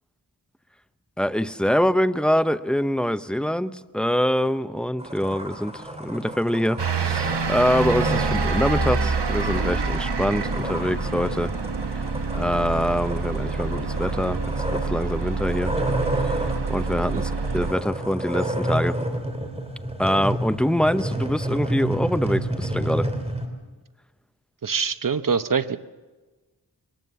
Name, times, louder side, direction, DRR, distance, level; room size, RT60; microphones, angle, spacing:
voice 1, 1.2-11.5 11.9-12.0 12.3-15.7 16.2-19.0 20.0-23.1, equal, ahead, 12 dB, 0.7 m, -24 dB
sound 1, 5.0-23.5, right 1 dB, 15° right, 3.3 m, -30 dB
sound 2, 6.8-17.7, right 4 dB, 75° right, 1.6 m, -27 dB
voice 2, 24.6-25.8, right 6 dB, 50° right, 12 dB, 0.9 m, -24 dB
23.0 x 18.5 x 7.0 m, 1.3 s
wide cardioid pair, 60°, 41 cm